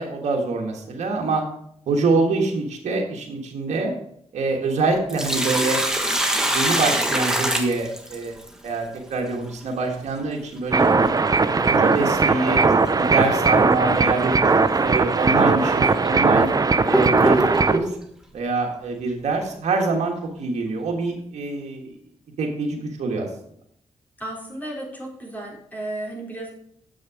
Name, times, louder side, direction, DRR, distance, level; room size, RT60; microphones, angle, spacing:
voice 1, 0.0-1.4 1.9-3.9 4.3-5.8 6.4-8.3 8.6-11.1 11.5-12.6 13.0-14.4 14.8-16.5 16.9-17.4 17.7-17.9 18.3-20.1 20.4-21.9 22.4-23.3, right 3 dB, 85° right, 0 dB, 1.5 m, -25 dB
Sink (filling or washing), 5.1-8.5 10.9-11.0 12.9-13.1 13.6-13.7 14.5-14.6 15.3-15.4 16.0-17.9, right 1 dB, 5° right, 1.5 m, -23 dB
sound 1, 10.7-17.8, right 4 dB, 30° right, 0.6 m, -19 dB
voice 2, 24.2-26.5, right 1 dB, 15° left, -2 dB, 3.6 m, -33 dB
7.4 x 6.4 x 4.9 m, 0.69 s
cardioid pair, 60°, 12 cm